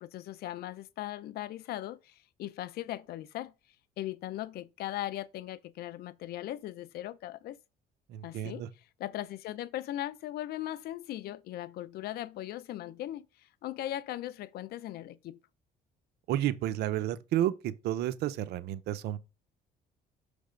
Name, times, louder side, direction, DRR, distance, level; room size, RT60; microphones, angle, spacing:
voice 1, 0.0-3.5 4.0-7.6 8.2-8.6 9.0-15.4, left 13 dB, 70° left, 0.5 m, -39 dB
voice 2, 8.1-8.7 16.3-19.2, right 12 dB, 75° right, 0.6 m, -31 dB
6.4 x 3.4 x 5.1 m
cardioid pair, 110°, 17 cm